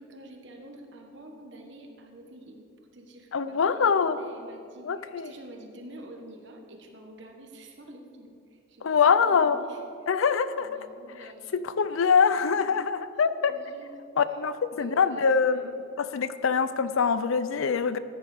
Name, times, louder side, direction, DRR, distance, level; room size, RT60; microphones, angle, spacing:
voice 1, 0.0-2.7 2.9-10.1 10.6-11.7 12.3-12.8 13.5-13.9 14.3-14.4 14.7-15.8, right 1 dB, 60° right, 3 dB, 1.3 m, -48 dB
voice 2, 3.3-4.2 4.8-5.3 8.8-9.6 10.1-10.8 11.5-13.5 14.2-18.0, left 6 dB, 80° left, 13 dB, 0.5 m, -24 dB
14.0 x 9.9 x 3.5 m, 2.4 s
head